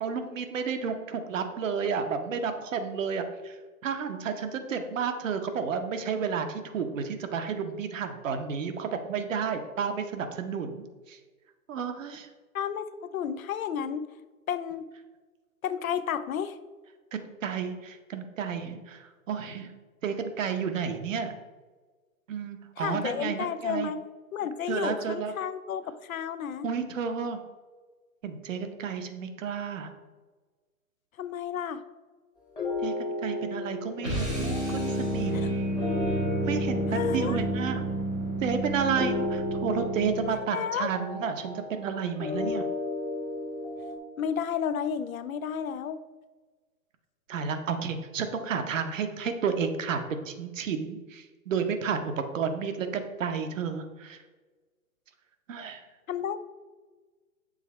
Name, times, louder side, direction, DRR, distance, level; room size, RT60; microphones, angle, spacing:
voice 1, 0.0-3.6 3.8-11.2 11.7-12.3 17.1-19.7 20.0-21.3 22.3-23.9 24.7-25.3 26.6-27.4 28.2-29.9 32.8-35.5 36.4-37.8 38.4-42.7 47.3-54.2 55.5-55.9, right 6 dB, 60° right, 7 dB, 0.8 m, -31 dB
voice 2, 12.5-14.1 14.5-14.9 15.6-16.6 22.8-24.0 24.3-26.7 31.2-31.8 35.3-35.5 36.9-37.4 40.3-40.9 44.2-46.0 56.1-56.4, left 8 dB, 70° left, 13 dB, 0.5 m, -32 dB
sound 1, 32.6-44.0, left 2 dB, 10° left, 1.0 m, -35 dB
sound 2, 34.0-40.5, right 1 dB, 5° right, 0.3 m, -30 dB
7.4 x 3.2 x 4.2 m, 1.3 s
hypercardioid pair, 125°, 44 cm